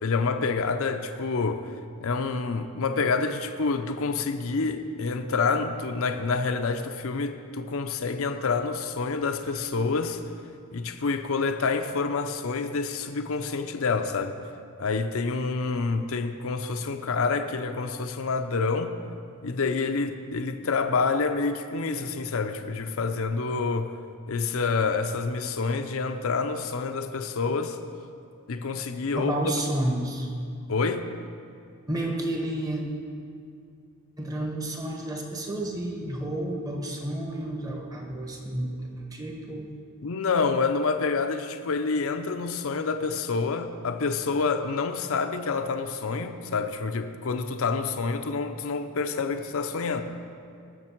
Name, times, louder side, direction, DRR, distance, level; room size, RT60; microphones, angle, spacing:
voice 1, 0.0-1.7 2.0-10.2 10.7-14.4 14.8-19.0 19.4-23.9 24.3-27.8 28.5-29.4 30.7-31.1 40.0-50.0, left 4 dB, 70° left, 8 dB, 0.6 m, -27 dB
voice 2, 29.1-30.3 31.9-32.8 34.2-39.7, right 1 dB, 15° right, 0 dB, 1.3 m, -31 dB
18.5 x 6.6 x 4.5 m, 2.4 s
head